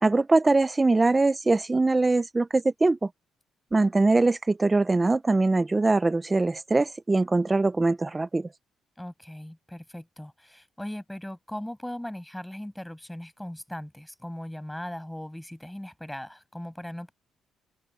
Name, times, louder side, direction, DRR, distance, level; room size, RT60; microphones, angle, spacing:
voice 1, 0.0-3.1 3.7-8.5, right 3 dB, 20° right, 0.8 m, -22 dB
voice 2, 9.0-17.1, left 1 dB, 5° left, 7.2 m, -38 dB
cardioid pair, 90°, 0 cm